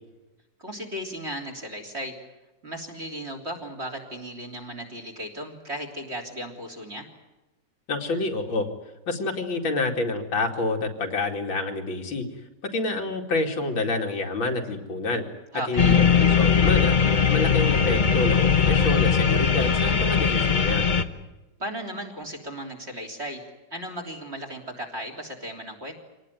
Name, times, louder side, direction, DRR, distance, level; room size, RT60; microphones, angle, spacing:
voice 1, 0.6-2.1 2.6-7.1 15.5-16.0 21.6-25.9, equal, 35° right, 5 dB, 3.8 m, -36 dB
voice 2, 7.9-8.7 9.1-12.3 12.6-15.2 15.7-17.0 17.3-20.9, left 2 dB, 85° left, 2 dB, 3.2 m, -27 dB
sound 1, 15.8-21.0, left 6 dB, 30° left, 0.9 m, -20 dB
26.0 x 18.5 x 9.3 m, 1.1 s
omnidirectional pair, 2.1 m